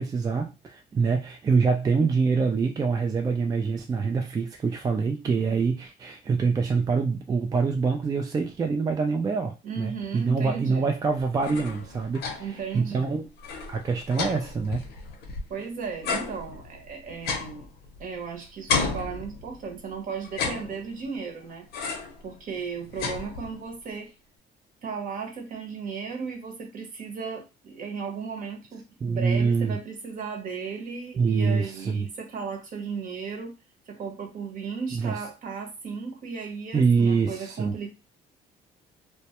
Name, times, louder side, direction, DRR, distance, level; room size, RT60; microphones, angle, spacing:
voice 1, 0.0-12.5 12.7-13.3 13.7-14.9 29.0-29.8 31.2-32.1 34.9-35.2 36.7-37.7, right 5 dB, 20° right, 3 dB, 0.3 m, -25 dB
voice 2, 9.6-10.9 12.4-13.1 15.5-17.7 18.0-21.7 22.2-24.1 24.8-33.5 33.9-37.9, right 5 dB, 55° right, 3 dB, 0.9 m, -35 dB
sound 1, 11.2-12.7 13.0-13.1 13.4-15.6 16.0-18.3 18.7-19.8 20.2-21.2 21.7-22.2 22.6-23.7, left 5 dB, 70° left, 0.7 m, -32 dB
2.2 x 2.1 x 2.8 m, 0.27 s
cardioid pair, 110°, 17 cm